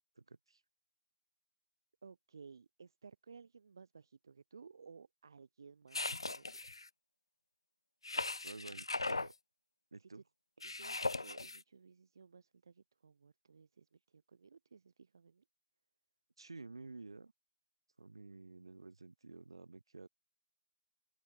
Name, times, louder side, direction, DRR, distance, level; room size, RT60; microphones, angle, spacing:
voice 1, 0.2-0.6 8.4-9.3 9.9-10.2 16.4-17.3 18.0-20.1, right 3 dB, 75° right, 5.2 m, -51 dB
voice 2, 2.0-6.6 10.0-10.2 10.6-15.4, right 5 dB, 55° right, 2.4 m, -58 dB
sound 1, 5.9-6.9 8.0-9.3 10.6-11.6, left 3 dB, 90° left, 0.3 m, -39 dB
open air
figure-of-eight pair, 155°, 3 cm